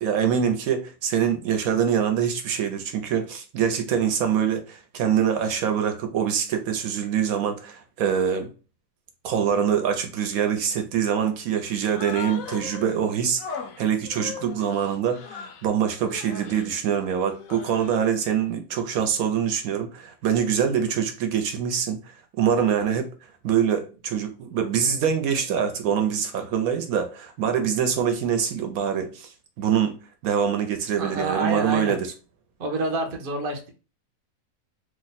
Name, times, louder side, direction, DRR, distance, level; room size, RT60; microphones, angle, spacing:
voice 1, 0.0-8.5 9.2-22.0 22.4-23.1 23.4-30.0 30.2-32.1, right 8 dB, 70° right, 1.0 m, -24 dB
Human voice, 11.8-13.0 13.4-15.7 16.1-16.7 17.3-18.1, left 6 dB, 70° left, 0.9 m, -39 dB
voice 2, 31.0-32.0 32.6-33.7, right 2 dB, 55° right, 0.6 m, -28 dB
2.9 x 2.1 x 4.0 m
omnidirectional pair, 1.7 m